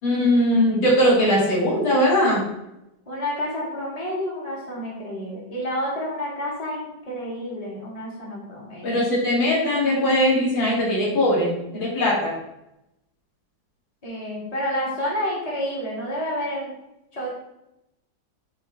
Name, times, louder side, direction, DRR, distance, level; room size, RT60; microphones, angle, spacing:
voice 1, 0.0-2.5 8.8-12.3, left 1 dB, 85° left, -5 dB, 3.4 m, -20 dB
voice 2, 3.1-9.0 14.0-16.7 17.1-17.3, equal, 20° left, -5 dB, 2.2 m, -29 dB
9.4 x 4.4 x 3.6 m, 0.86 s
omnidirectional pair, 2.1 m